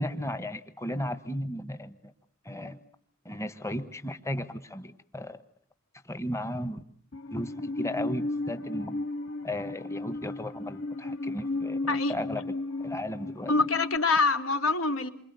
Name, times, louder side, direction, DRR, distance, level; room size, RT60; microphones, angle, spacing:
voice 1, 0.0-2.1 2.4-2.8 3.2-5.4 6.0-6.8 7.3-9.0 9.4-12.5 12.8-13.5, left 1 dB, 15° left, 11 dB, 1.2 m, -35 dB
Musical instrument, 7.1-14.0, left 2 dB, 65° left, 2.6 m, -34 dB
voice 2, 13.5-15.1, left 3 dB, 80° left, 6 dB, 3.4 m, -25 dB
28.5 x 25.5 x 8.1 m, 0.65 s
head